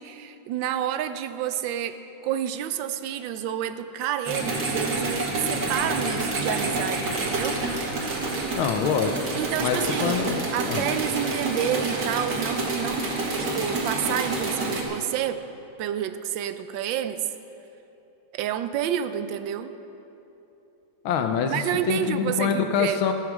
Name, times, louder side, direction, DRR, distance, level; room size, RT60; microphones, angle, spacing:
voice 1, 0.0-7.6 9.4-10.2 10.5-13.1 13.4-15.4 15.8-17.2 18.3-19.7 21.5-23.0, right 10 dB, 70° right, 10 dB, 1.3 m, -29 dB
sound 1, 4.2-14.8, right 2 dB, 55° right, 2.2 m, -28 dB
voice 2, 8.6-9.2 9.6-10.4 10.7-10.8 21.0-23.1, left 7 dB, 75° left, 6 dB, 1.5 m, -25 dB
15.0 x 9.6 x 6.2 m, 3.0 s
omnidirectional pair, 2.3 m